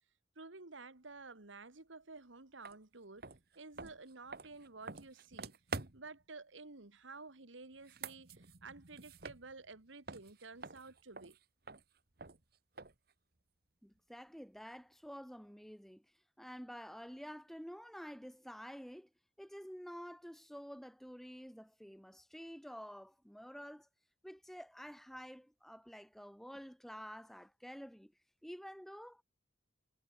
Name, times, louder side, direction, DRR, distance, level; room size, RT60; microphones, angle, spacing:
voice 1, 0.4-3.3 3.6-5.6 5.9-11.4, right 3 dB, 80° right, 2.0 m, -52 dB
sound 1, 2.6-2.8 3.2-6.2 7.7-9.8 10.1-13.1, right 4 dB, 50° right, 1.4 m, -48 dB
voice 2, 13.8-16.1 16.4-19.1 19.4-23.9 24.2-28.1 28.4-29.2, equal, ahead, 1.4 m, -50 dB
head